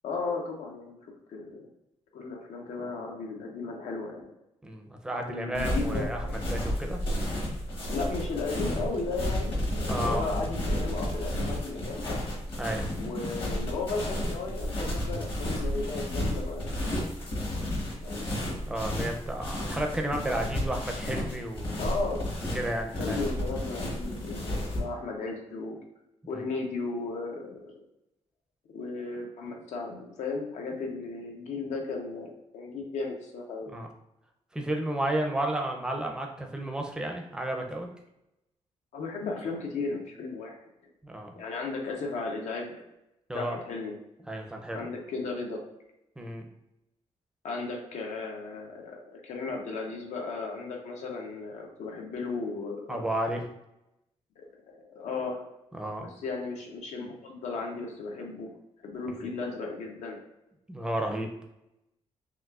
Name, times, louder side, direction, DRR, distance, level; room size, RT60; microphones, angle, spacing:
voice 1, 0.0-1.0 1.3-1.6 2.1-4.3 5.1-6.3 7.9-12.2 12.9-17.1 18.0-18.3 21.8-22.5 23.0-25.8 26.3-27.7 28.7-33.7 38.9-40.6 41.3-42.8 43.3-43.9 44.7-45.6 47.4-53.1 54.4-55.5 56.0-58.6 58.8-60.2, left 3 dB, 80° left, 1 dB, 0.9 m, -35 dB
voice 2, 4.6-7.0 9.9-10.2 12.6-12.8 18.7-21.9 22.5-23.2 26.2-26.4 33.7-33.9 34.5-37.9 41.0-41.3 43.3-43.6 44.3-44.9 46.2-46.4 52.9-53.4 55.7-56.2 60.7-61.3, right 1 dB, 5° right, 2 dB, 0.5 m, -32 dB
sound 1, 5.5-24.8, equal, 50° left, 1.2 m, -32 dB
6.0 x 2.5 x 2.4 m, 0.90 s
wide cardioid pair, 170°, 12 cm